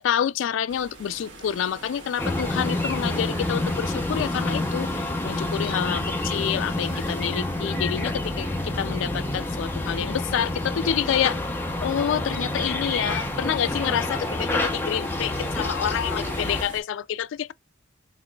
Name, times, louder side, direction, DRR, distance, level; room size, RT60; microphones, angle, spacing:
voice 1, 0.0-11.4 11.8-17.5, left 9 dB, 70° left, 0.3 m, -28 dB
sound 1, 0.7-16.8, right 2 dB, 70° right, 1.4 m, -45 dB
sound 2, 2.2-16.6, left 2 dB, 10° left, 0.6 m, -28 dB
4.1 x 3.0 x 2.2 m
head